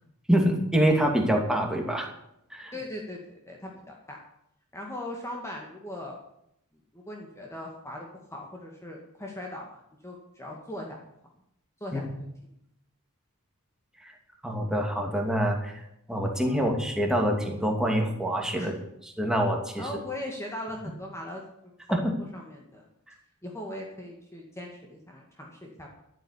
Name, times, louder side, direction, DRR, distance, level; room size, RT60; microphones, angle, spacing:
voice 1, 0.3-2.1 2.5-2.7 11.9-12.0 14.4-15.8 16.1-18.7 19.2-19.8 21.9-22.1, equal, 5° right, 1 dB, 2.6 m, -25 dB
voice 2, 2.7-4.2 4.7-6.2 6.9-8.0 8.3-11.0 11.8-12.3 16.5-16.7 18.6-18.8 19.8-22.9 23.4-25.9, left 1 dB, 15° left, -1 dB, 2.1 m, -39 dB
12.0 x 9.4 x 9.9 m, 0.78 s
head